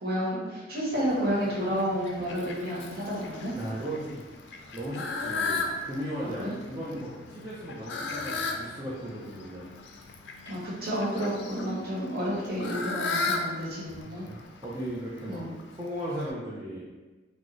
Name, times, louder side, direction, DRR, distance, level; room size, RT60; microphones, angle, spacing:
voice 1, 0.0-3.5 6.4-6.5 10.5-14.3 15.3-15.5, equal, 55° right, -7 dB, 1.0 m, -30 dB
Fowl, 0.9-16.3, left 3 dB, 80° left, 0.4 m, -37 dB
voice 2, 3.6-4.2 4.7-9.7 14.0-15.4 15.7-16.8, equal, 20° right, -8 dB, 0.4 m, -36 dB
3.6 x 2.0 x 3.1 m, 1.2 s
head